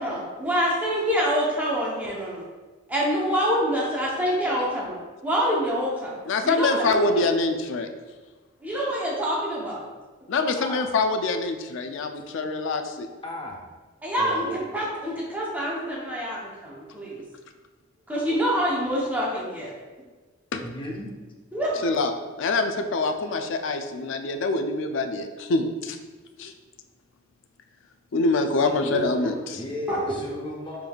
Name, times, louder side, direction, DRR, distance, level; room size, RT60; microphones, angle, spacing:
voice 1, 0.0-2.5 2.9-5.0 5.2-6.2 6.4-7.3 8.6-9.9 14.0-17.2 18.1-19.7 21.5-21.9 28.9-29.3 29.9-30.0, equal, 10° right, -5 dB, 0.7 m, -26 dB
voice 2, 6.3-7.9 10.3-13.1 20.5-20.6 21.8-22.1 22.4-26.0 26.4-26.5 28.1-29.6, left 3 dB, 65° left, 7 dB, 0.4 m, -25 dB
voice 3, 10.5-10.9 13.2-13.6 14.2-14.6 20.6-21.1 28.6-29.0 29.5-30.9, left 1 dB, 25° left, -1 dB, 0.6 m, -35 dB
4.8 x 3.5 x 2.3 m, 1.3 s
head